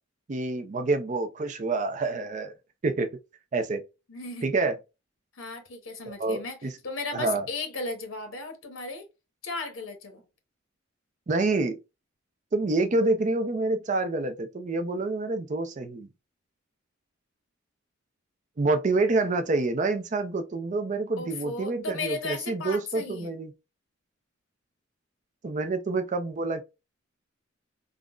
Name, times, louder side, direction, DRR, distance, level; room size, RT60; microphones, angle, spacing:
voice 1, 0.3-2.5 2.8-3.1 3.5-3.8 4.4-4.7 6.1-6.7 7.1-7.5 11.3-11.8 12.5-16.1 18.6-23.5 25.4-26.6, right 3 dB, 40° right, 0.4 m, -27 dB
voice 2, 4.1-4.5 5.4-6.6 6.8-9.0 9.4-10.2 21.2-23.3, left 3 dB, 90° left, 0.8 m, -35 dB
3.6 x 2.0 x 2.3 m
head